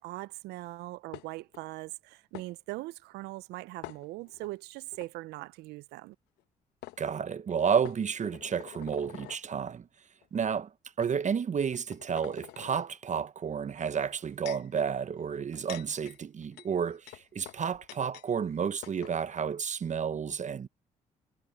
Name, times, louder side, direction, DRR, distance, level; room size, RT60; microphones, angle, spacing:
voice 1, 0.0-6.2, right 19 dB, 80° right, 0.7 m, -41 dB
sound 1, 1.1-1.6 2.3-2.5 3.8-4.5 4.9-5.1 6.4-6.5 6.8-7.0 7.8-9.4 10.2-10.4 11.0-11.1 11.7-12.8 14.0-14.7 15.4-18.3 18.5-18.6 18.8-19.2, left 18 dB, 80° left, 1.2 m, -47 dB
voice 2, 7.0-9.9 10.3-10.7 11.0-20.7, right 7 dB, 45° right, 1.0 m, -31 dB
hypercardioid pair, 50°, 17 cm